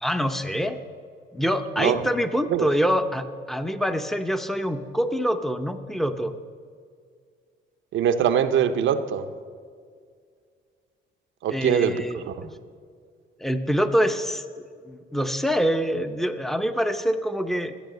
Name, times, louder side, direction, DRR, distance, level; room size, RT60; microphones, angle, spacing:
voice 1, 0.0-0.8 1.3-6.3 11.5-12.5 13.4-14.4 14.9-17.7, equal, ahead, 9 dB, 0.7 m, -25 dB
voice 2, 7.9-9.3 11.4-12.5, right 8 dB, 75° right, 8 dB, 0.7 m, -23 dB
13.5 x 8.2 x 6.6 m, 2.1 s
cardioid pair, 90°, 20 cm